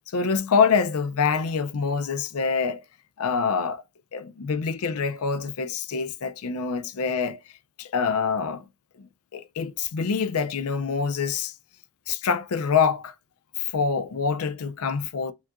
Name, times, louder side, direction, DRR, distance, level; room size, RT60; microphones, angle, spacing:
voice 1, 0.1-2.8 3.2-3.8 4.1-7.4 7.8-8.7 9.0-11.5 12.1-13.1 13.6-15.3, left 5 dB, 75° left, 0.5 m, -25 dB
7.2 x 2.5 x 2.2 m
head